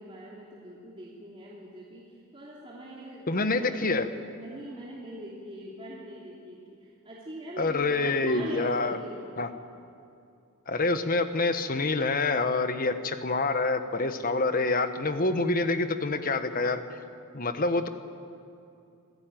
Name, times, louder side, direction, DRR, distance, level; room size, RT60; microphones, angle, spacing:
voice 1, 0.0-9.3, right 1 dB, 25° right, -6 dB, 3.0 m, -43 dB
voice 2, 3.3-4.1 7.6-9.0 9.4-9.5 10.7-17.0 17.3-17.9, left 3 dB, 40° left, 9 dB, 1.2 m, -27 dB
26.5 x 15.0 x 9.2 m, 2.6 s
head